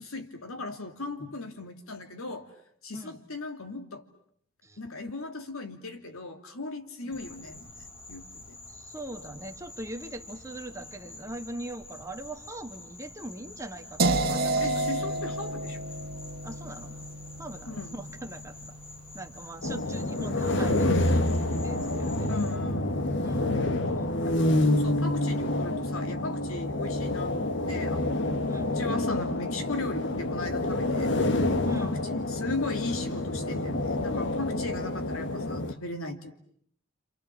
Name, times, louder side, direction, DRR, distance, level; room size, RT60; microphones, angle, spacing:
voice 1, 0.0-2.5 2.8-4.0 4.8-8.6 14.6-15.9 17.7-18.0 22.3-23.0 24.1-24.4 24.7-31.1 31.8-36.3, left 2 dB, 85° left, 7 dB, 2.8 m, -37 dB
Insect, 7.1-22.6, left 2 dB, 25° left, 3.5 m, -48 dB
voice 2, 8.7-15.3 16.4-17.1 17.4-18.7 19.1-22.2 23.2-24.7 28.5-28.7 31.6-32.0, right 1 dB, 15° right, 5 dB, 1.9 m, -41 dB
sound 1, 14.0-19.9, right 2 dB, 45° right, 1.9 m, -31 dB
sound 2, 19.6-35.7, left 1 dB, 55° left, 1.6 m, -28 dB
28.5 x 28.0 x 7.5 m, 0.64 s
head